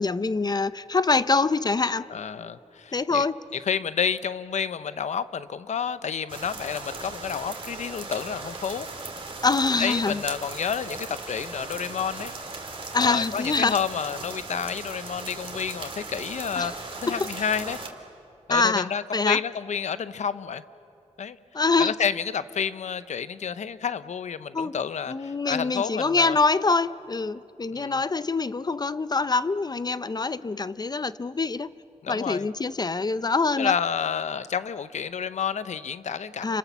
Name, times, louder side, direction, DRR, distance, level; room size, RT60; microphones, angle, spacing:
voice 1, 0.0-2.1 2.9-3.4 9.4-10.2 12.9-13.8 16.5-16.7 17.1-17.3 18.5-19.4 21.5-22.0 24.5-24.8 25.1-31.7 32.1-33.7 36.4-36.6, left 4 dB, 35° left, 0.6 m, -25 dB
voice 2, 2.1-3.3 3.5-8.9 9.8-12.3 13.0-17.8 18.5-20.6 21.2-21.4 21.8-26.4 27.7-28.0 32.0-32.5 33.6-36.6, left 7 dB, 80° left, 0.7 m, -30 dB
sound 1, 6.3-17.9, right 3 dB, 50° right, 2.9 m, -38 dB
29.0 x 25.5 x 7.2 m
cardioid pair, 70°, 12 cm